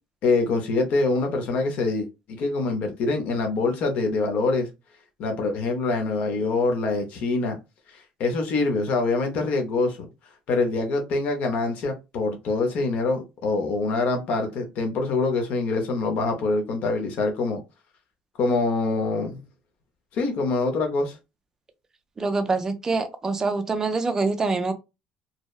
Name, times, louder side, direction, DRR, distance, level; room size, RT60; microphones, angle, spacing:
voice 1, 0.2-4.7 5.2-7.6 7.9-10.0 10.5-17.6 18.4-19.4 20.1-21.2, left 3 dB, 55° left, 0.6 m, -25 dB
voice 2, 22.2-24.7, right 3 dB, 20° right, 0.4 m, -25 dB
2.7 x 2.0 x 2.2 m
cardioid pair, 145°, 3 cm